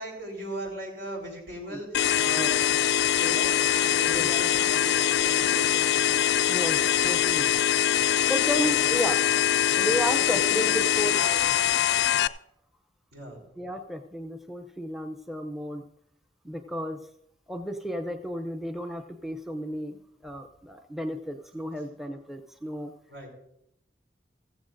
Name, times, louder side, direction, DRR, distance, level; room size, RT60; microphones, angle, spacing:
voice 1, 0.0-6.2 8.5-8.7 9.7-10.7 11.1-11.8 13.1-13.4 23.1-23.3, right 1 dB, 80° right, 0 dB, 4.2 m, -39 dB
sound 1, 1.9-12.3, left 10 dB, 70° left, 0.3 m, -23 dB
voice 2, 6.2-7.5 8.3-9.2 9.6-11.2 13.6-15.8 16.4-17.0 17.5-22.9, equal, ahead, 6 dB, 0.6 m, -33 dB
15.0 x 15.0 x 2.6 m, 0.77 s
head